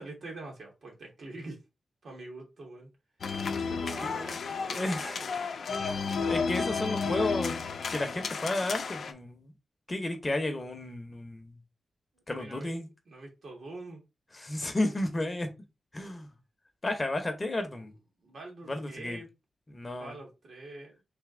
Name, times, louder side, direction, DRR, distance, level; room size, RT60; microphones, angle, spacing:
voice 1, 0.0-1.6 2.0-2.9 3.5-5.3 12.3-14.0 18.2-19.3 20.0-21.0, right 2 dB, 70° right, 1.6 m, -45 dB
sound 1, 3.2-9.1, left 5 dB, 70° left, 0.5 m, -32 dB
voice 2, 4.7-5.2 6.2-7.6 7.9-9.5 9.9-11.6 12.3-12.9 14.3-15.5 15.9-16.3 16.8-17.9 18.6-19.2 19.7-20.2, left 1 dB, 25° left, 0.8 m, -32 dB
3.4 x 2.7 x 3.7 m
wide cardioid pair, 125°, 0 cm